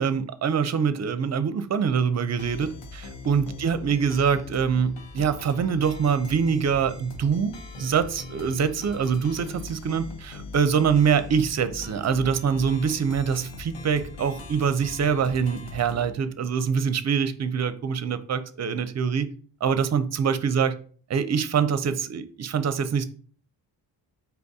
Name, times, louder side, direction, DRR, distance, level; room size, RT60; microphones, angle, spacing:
voice 1, 0.0-19.3 19.6-20.7 21.1-23.0, right 6 dB, 35° right, 12 dB, 0.5 m, -24 dB
sound 1, 2.4-16.1, left 3 dB, 70° left, 0.9 m, -40 dB
4.5 x 2.6 x 3.5 m, 0.44 s
cardioid pair, 60°, 45 cm